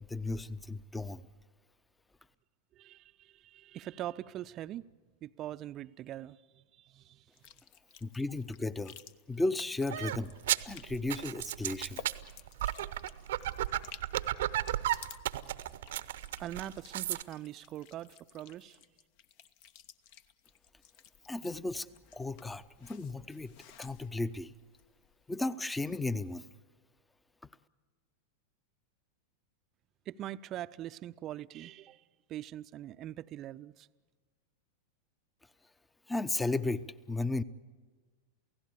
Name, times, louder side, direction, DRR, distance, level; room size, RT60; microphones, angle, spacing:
voice 1, 0.1-1.2 8.0-9.0 9.3-10.3 10.6-12.0 21.3-21.9 22.1-24.5 25.3-26.5 36.1-37.4, left 2 dB, 10° left, 0.8 m, -34 dB
voice 2, 2.8-4.9 5.2-7.3 16.4-18.8 30.1-32.0 32.3-33.9, right 13 dB, 35° right, 0.6 m, -42 dB
sound 1, 7.3-25.2, left 9 dB, 45° left, 0.9 m, -55 dB
sound 2, 9.9-17.2, right 13 dB, 60° right, 0.8 m, -34 dB
29.0 x 16.5 x 8.4 m
figure-of-eight pair, 90°, 0 cm